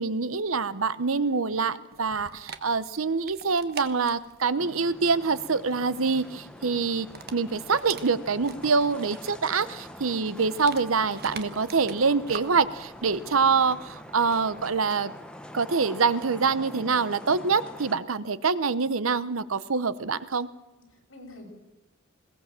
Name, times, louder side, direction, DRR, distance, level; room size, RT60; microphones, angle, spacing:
voice 1, 0.0-15.1 15.5-20.5, right 4 dB, 90° right, 15 dB, 0.9 m, -25 dB
voice 2, 1.2-1.7 20.9-21.5, left 2 dB, 70° left, 0 dB, 6.5 m, -48 dB
Dog, 1.9-14.8, right 6 dB, 50° right, 1.3 m, -46 dB
sound 1, 4.6-18.0, left 1 dB, 5° left, 1.2 m, -44 dB
21.0 x 17.5 x 7.6 m, 1.1 s
head